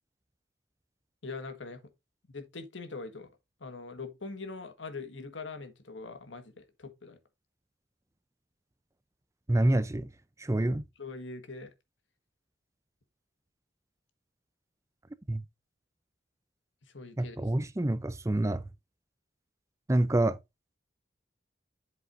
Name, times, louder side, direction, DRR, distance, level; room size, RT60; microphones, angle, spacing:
voice 1, 1.2-1.8 2.3-3.3 3.6-7.2 11.0-11.7 16.8-17.4, left 3 dB, 80° left, 1.5 m, -42 dB
voice 2, 9.5-10.1 10.4-10.8 15.3-15.4 17.2-18.7 19.9-20.4, right 1 dB, 15° right, 0.5 m, -27 dB
7.7 x 7.7 x 2.5 m
head